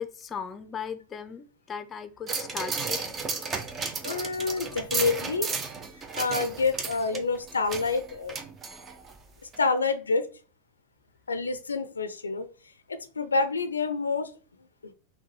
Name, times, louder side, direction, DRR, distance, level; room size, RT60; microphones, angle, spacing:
voice 1, 0.0-3.0 7.1-7.2, left 6 dB, 25° left, 10 dB, 0.5 m, -37 dB
sound 1, 2.3-9.2 9.5-9.6, right 4 dB, 25° right, 0.7 m, -34 dB
voice 2, 4.0-5.5 6.1-8.4 9.6-10.2 11.3-12.5 12.9-14.3 14.8-14.9, left 4 dB, 80° left, 10 dB, 0.5 m, -27 dB
5.8 x 2.2 x 3.1 m, 0.37 s
figure-of-eight pair, 90°, 0 cm